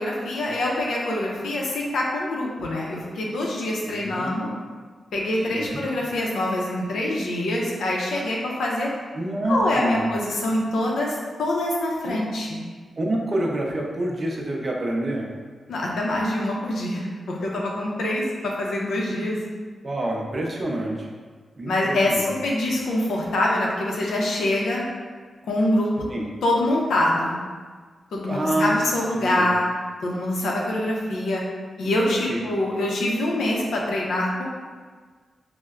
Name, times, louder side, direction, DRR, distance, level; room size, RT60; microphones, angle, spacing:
voice 1, 0.0-4.5 5.1-8.9 9.5-12.6 15.7-19.4 21.7-24.9 25.5-25.9 26.4-27.5 28.1-29.6 30.0-31.4 31.8-34.4, left 1 dB, 90° left, -3 dB, 0.6 m, -25 dB
voice 2, 3.8-4.3 5.5-5.8 9.1-10.0 12.0-12.2 13.0-15.3 19.8-21.1 21.6-22.2 26.1-26.2 28.2-28.7 29.1-29.5 32.3-32.4, right 1 dB, 40° right, -1 dB, 0.5 m, -27 dB
4.3 x 2.0 x 2.3 m, 1.5 s
cardioid pair, 85°, 0 cm